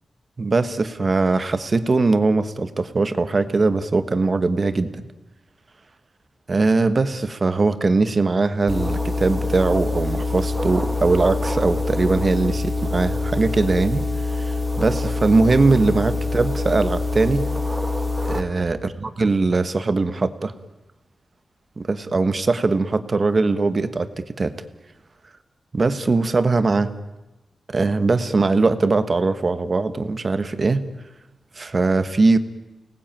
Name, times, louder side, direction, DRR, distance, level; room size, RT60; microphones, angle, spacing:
voice 1, 0.4-5.0 6.5-14.1 14.4-17.5 18.2-20.5 21.8-24.6 25.7-26.9 27.7-30.9 31.6-32.4, right 3 dB, 35° right, 11 dB, 1.4 m, -21 dB
sound 1, 8.7-18.4, left 2 dB, 5° right, 2.3 m, -25 dB
29.5 x 19.0 x 9.0 m, 1.1 s
wide cardioid pair, 135°, 0 cm